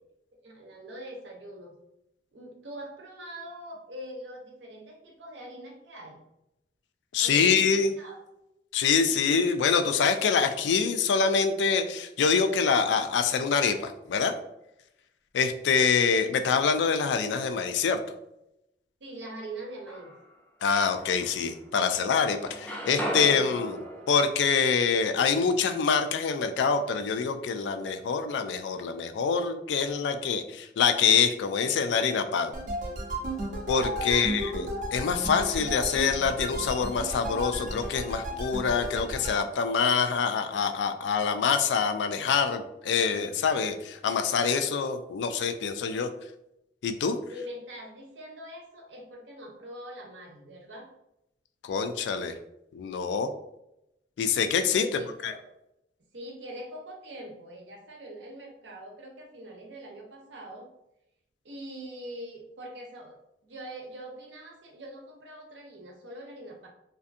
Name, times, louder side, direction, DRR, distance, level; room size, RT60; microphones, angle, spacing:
voice 1, 0.4-1.8 2.3-6.2 7.2-8.2 19.0-20.1 33.8-34.3 47.3-50.9 54.7-55.4 56.1-60.7 61.4-66.7, right 1 dB, 90° right, 0 dB, 0.7 m, -43 dB
voice 2, 7.1-7.9 8.7-14.3 15.3-18.0 20.6-32.5 33.7-46.1 46.8-47.2 51.6-52.3 52.7-53.3 54.2-54.8 55.2-55.3, left 6 dB, 80° left, 8 dB, 0.3 m, -25 dB
sound 1, 19.5-20.4 21.0-22.0 22.3-26.2, equal, 10° left, 0.4 m, -38 dB
sound 2, 32.5-39.4, equal, 45° right, 0.5 m, -34 dB
2.6 x 2.5 x 2.4 m, 0.84 s
head